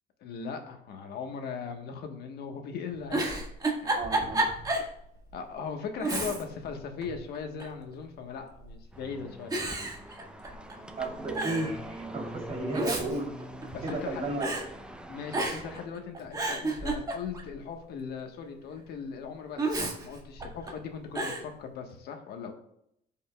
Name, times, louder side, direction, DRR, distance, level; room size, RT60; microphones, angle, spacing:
voice 1, 0.2-3.5 3.8-4.4 5.3-9.5 13.7-14.2 15.1-22.5, left 6 dB, 75° left, 5 dB, 1.3 m, -39 dB
Giggle, 2.9-4.9 5.3-5.4 6.0-6.7 7.0-7.8 8.6-9.0 9.5-10.7 11.0-11.1 11.3-11.7 12.5-14.1 14.4-14.7 15.3-15.8 16.1-17.5 19.6-20.7 21.1-21.5, right 2 dB, 20° right, 1.7 m, -31 dB
voice 2, 3.9-4.5 11.0-13.3 13.8-14.5, right 2 dB, 40° right, -3 dB, 3.1 m, -33 dB
sound 1, 8.9-15.9, right 1 dB, 5° right, 0.6 m, -43 dB
13.5 x 5.3 x 2.3 m, 0.74 s
cardioid pair, 110°, 17 cm